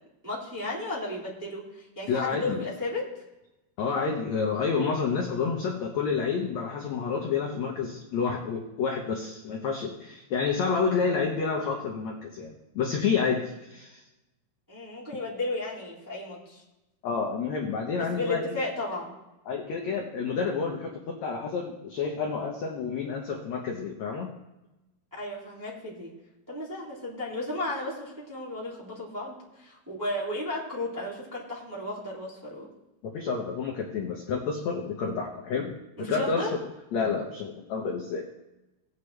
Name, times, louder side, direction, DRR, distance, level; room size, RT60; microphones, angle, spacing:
voice 1, 0.2-3.0 14.7-16.6 18.0-19.1 25.2-26.1 26.5-32.7 36.0-36.5, left 2 dB, 5° right, -6 dB, 1.6 m, -34 dB
voice 2, 2.1-2.6 3.8-14.0 17.0-18.6 19.5-24.3 33.0-36.5 36.9-38.2, left 5 dB, 75° left, 0 dB, 1.6 m, -29 dB
18.5 x 8.3 x 3.3 m, 0.99 s
omnidirectional pair, 4.7 m